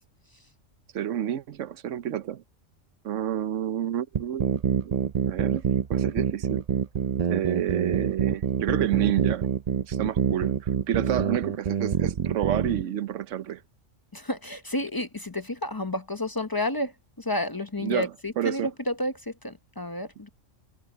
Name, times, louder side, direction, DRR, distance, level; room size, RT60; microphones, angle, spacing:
voice 1, 0.9-2.4 3.0-4.9 5.3-5.6 5.9-6.6 7.3-9.5 9.9-13.6 17.8-18.1 18.4-18.7, right 11 dB, 75° right, 1.1 m, -29 dB
sound 1, 4.1-12.8, right 7 dB, 45° right, 0.5 m, -26 dB
voice 2, 14.1-20.3, left 1 dB, 20° left, 0.6 m, -31 dB
omnidirectional pair, 1.3 m